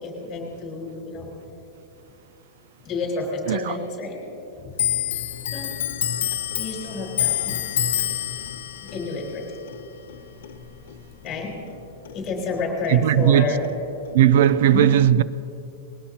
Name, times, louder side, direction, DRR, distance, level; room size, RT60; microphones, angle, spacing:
voice 1, 0.0-1.3 2.8-4.1 5.5-5.8 6.6-7.6 8.9-9.4 11.2-11.5 12.1-13.7 14.7-14.9, left 3 dB, 25° left, 4.2 m, -29 dB
Clock, 4.7-11.8 12.1-13.4 13.6-14.5, left 10 dB, 85° left, 0.9 m, -28 dB
voice 2, 12.9-13.5 14.1-15.2, right 11 dB, 60° right, 0.4 m, -16 dB
20.5 x 17.5 x 2.9 m
supercardioid pair, 165°, 0 cm